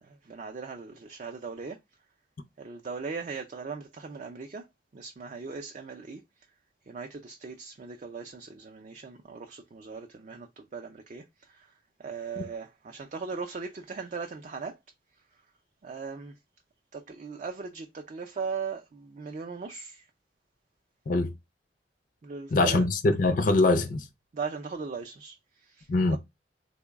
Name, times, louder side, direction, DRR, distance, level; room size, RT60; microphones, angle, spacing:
voice 1, 0.0-1.8 2.6-4.6 4.9-6.2 6.9-11.7 12.0-14.8 15.8-16.4 16.9-20.1 22.2-22.9 24.3-26.2, right 5 dB, 40° right, 0.4 m, -39 dB
voice 2, 22.5-24.1 25.9-26.2, left 2 dB, 50° left, 0.4 m, -23 dB
3.7 x 2.1 x 3.4 m
head